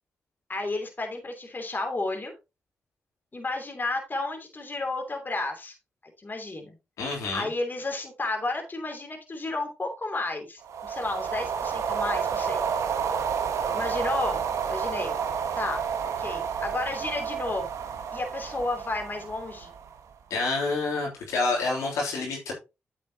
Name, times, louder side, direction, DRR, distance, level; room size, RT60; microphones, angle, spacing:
voice 1, 0.5-2.3 3.3-5.7 6.2-6.8 7.3-12.6 13.7-14.4 14.7-15.1 15.6-15.8 16.2-17.7 18.1-19.7, left 2 dB, 35° left, 3.0 m, -32 dB
voice 2, 7.0-7.5 20.3-22.5, left 3 dB, 90° left, 3.3 m, -28 dB
sound 1, 10.6-20.1, right 7 dB, 80° right, 1.3 m, -30 dB
8.8 x 7.7 x 2.9 m
supercardioid pair, 50°, 5 cm